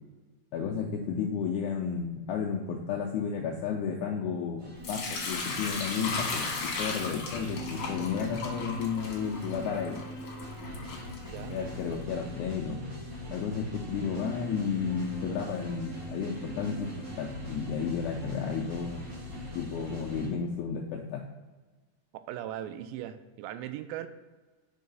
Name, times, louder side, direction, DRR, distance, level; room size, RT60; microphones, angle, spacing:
voice 1, 0.5-10.0 11.5-12.8 13.3-16.9 17.2-19.1 19.5-21.2, left 6 dB, 85° left, 0 dB, 1.7 m, -32 dB
sound 1, 4.6-20.3, equal, 40° right, 2.0 m, -41 dB
Sink (filling or washing) / Liquid, 4.8-11.8, left 4 dB, 60° left, 2.1 m, -36 dB
voice 2, 22.1-24.1, right 12 dB, 85° right, 11 dB, 2.3 m, -38 dB
5.4 x 4.7 x 5.2 m, 1.3 s
omnidirectional pair, 4.1 m